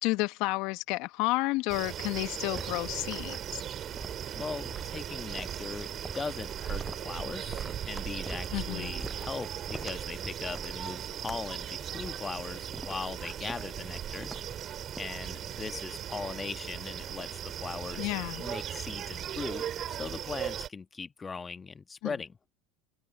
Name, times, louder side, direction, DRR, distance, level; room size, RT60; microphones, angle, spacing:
voice 1, 0.0-3.6 8.5-8.9 18.0-18.4 22.0-22.1, left 22 dB, 60° left, 1.1 m, -31 dB
sound 1, 1.7-20.7, right 10 dB, 40° right, 2.8 m, -38 dB
sound 2, 2.5-15.0, right 1 dB, 5° right, 7.3 m, -46 dB
voice 2, 4.4-5.9 6.1-14.3 15.0-17.3 17.6-18.1 18.4-22.3, left 5 dB, 20° left, 1.3 m, -39 dB
hypercardioid pair, 85°, 0 cm